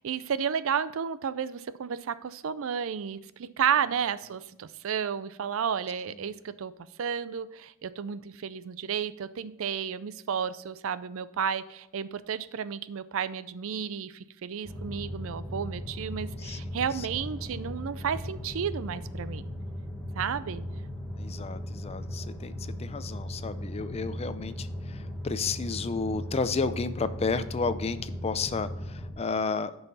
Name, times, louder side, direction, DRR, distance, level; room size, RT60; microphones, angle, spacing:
voice 1, 0.0-6.7 7.0-19.5 20.1-20.6, right 7 dB, 65° right, 15 dB, 0.4 m, -32 dB
sound 1, 14.6-29.1, left 1 dB, 5° left, 1.4 m, -37 dB
voice 2, 21.2-29.8, left 4 dB, 30° left, 13 dB, 0.4 m, -32 dB
9.9 x 5.6 x 4.1 m, 0.89 s
head